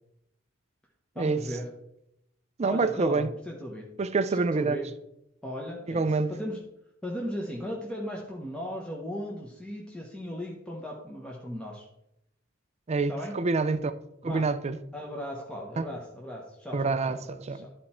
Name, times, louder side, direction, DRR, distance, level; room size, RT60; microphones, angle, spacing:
voice 1, 1.1-1.7 2.6-3.9 4.3-4.9 5.4-6.6 7.0-11.9 13.1-13.3 14.2-14.4 14.9-17.2 17.5-17.7, equal, 5° left, 1.0 m, -37 dB
voice 2, 2.6-3.3 4.0-4.8 5.9-6.3 12.9-14.0 14.2-14.8 15.8-15.9 16.7-17.7, right 3 dB, 35° right, 0.4 m, -27 dB
12.0 x 4.4 x 4.3 m
head